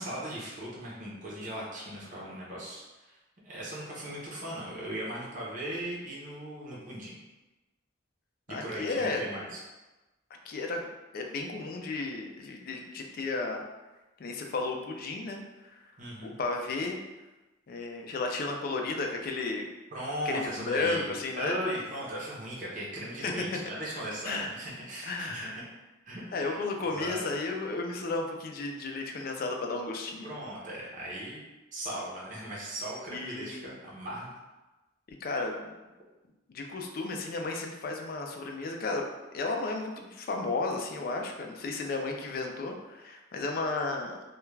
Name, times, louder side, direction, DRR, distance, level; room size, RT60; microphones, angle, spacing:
voice 1, 0.0-3.2 3.4-7.2 8.5-9.6 16.0-16.4 19.9-25.5 26.1-27.2 30.2-31.4 31.7-34.3, right 1 dB, 45° right, -5 dB, 0.7 m, -38 dB
voice 2, 8.5-9.2 10.4-10.8 11.1-13.6 14.2-15.8 16.2-17.0 17.7-19.7 20.3-21.6 23.2-23.6 24.2-24.5 25.0-25.5 26.3-30.4 33.1-33.7 35.2-35.7 36.5-39.1 39.3-44.3, left 3 dB, 50° left, 2 dB, 0.4 m, -33 dB
2.3 x 2.2 x 3.1 m, 1.1 s
head